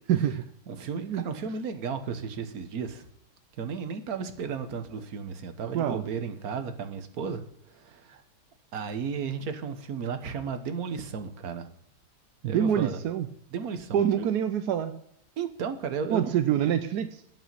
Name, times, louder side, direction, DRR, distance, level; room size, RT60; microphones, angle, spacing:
voice 1, 0.1-0.4 1.0-1.3 5.7-6.0 12.4-13.3 13.9-14.9 16.1-17.1, right 9 dB, 75° right, 10 dB, 0.9 m, -25 dB
voice 2, 0.7-3.1 3.6-7.4 7.7-8.2 8.7-11.7 12.4-13.0 13.5-14.3 15.4-16.3, right 6 dB, 50° right, 8 dB, 1.3 m, -34 dB
8.7 x 7.2 x 7.5 m, 0.73 s
omnidirectional pair, 2.4 m